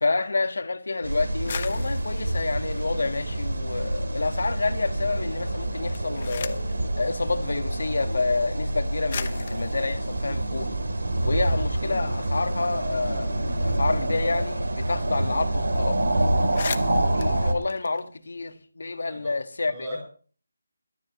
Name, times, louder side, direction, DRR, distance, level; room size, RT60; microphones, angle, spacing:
voice 1, 0.0-6.6 7.0-10.7 11.2-16.0 17.1-20.0, left 3 dB, 70° left, 1.5 m, -28 dB
sound 1, 1.0-17.5, right 1 dB, 90° right, 3.2 m, -27 dB
sound 2, 1.3-3.9 4.2-4.9 5.7-6.8 7.8-7.9 8.7-8.8 9.1-11.4 11.8-11.9 12.1-14.7 15.0-15.1 15.4-15.7 16.0-16.1 16.4-18.6, left 6 dB, 30° left, 0.9 m, -40 dB
voice 2, 16.5-16.9 19.1-19.4 19.7-20.0, right 1 dB, 10° right, 7.0 m, -40 dB
18.0 x 12.5 x 3.1 m
figure-of-eight pair, 175°, 0 cm